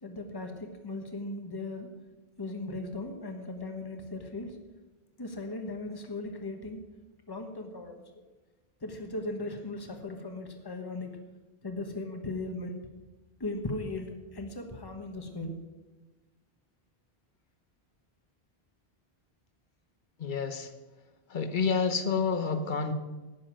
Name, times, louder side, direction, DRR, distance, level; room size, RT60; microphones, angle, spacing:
voice 1, 0.0-1.9 2.4-4.5 5.2-6.8 7.3-8.0 8.8-11.2 11.6-12.8 13.4-15.5, left 2 dB, 20° left, 5 dB, 1.3 m, -37 dB
voice 2, 20.2-20.7 21.3-22.9, left 5 dB, 50° left, 8 dB, 1.2 m, -29 dB
12.0 x 9.7 x 6.3 m, 1.2 s
omnidirectional pair, 1.1 m